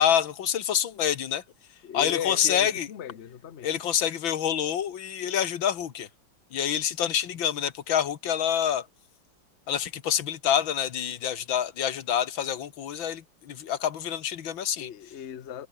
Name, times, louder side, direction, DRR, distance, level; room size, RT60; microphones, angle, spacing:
voice 1, 0.0-1.4 1.9-2.9 3.6-6.1 6.5-8.9 9.7-14.9, left 9 dB, 80° left, 2.1 m, -27 dB
voice 2, 1.8-3.7 14.8-15.7, left 9 dB, 45° left, 1.0 m, -36 dB
omnidirectional pair, 2.1 m